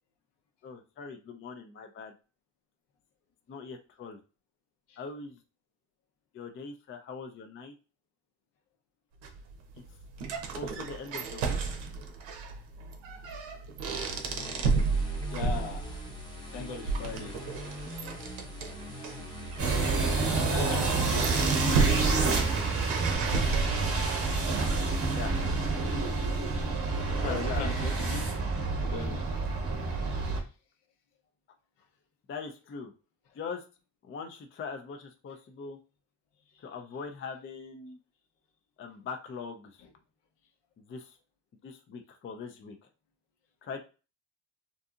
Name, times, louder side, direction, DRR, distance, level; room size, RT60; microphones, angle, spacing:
voice 1, 0.6-2.1 3.5-4.2 5.0-5.4 6.3-7.7 10.5-11.8 20.3-20.6 25.1-25.3 27.1-27.7 32.3-32.9 33.3-33.6 34.0-35.8 36.6-38.0 38.8-39.8 40.9-41.2 41.6-42.8 43.6-43.8, left 5 dB, 30° left, 0.4 m, -41 dB
sound 1, 9.2-24.2, right 4 dB, 80° right, 0.7 m, -33 dB
sound 2, 13.8-23.1, equal, 10° left, 0.8 m, -43 dB
voice 2, 15.3-16.0 16.5-17.3 20.4-21.9 22.1-22.6 27.1-28.3 28.8-29.3 39.8-39.9, left 4 dB, 65° left, 0.8 m, -39 dB
sound 3, 19.6-30.4, right 3 dB, 30° right, 0.8 m, -28 dB
2.6 x 2.6 x 2.4 m
cardioid pair, 90°, 46 cm